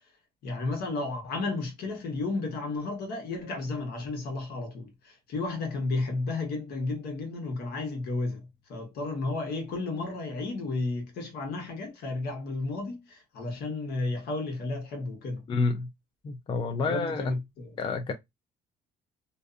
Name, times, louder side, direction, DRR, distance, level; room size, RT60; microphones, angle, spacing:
voice 1, 0.4-15.5 16.8-17.7, left 3 dB, 70° left, 1.1 m, -33 dB
voice 2, 15.5-15.9 16.2-17.2 17.8-18.1, left 3 dB, 30° left, 0.4 m, -28 dB
2.5 x 2.4 x 2.4 m
cardioid pair, 110°, 17 cm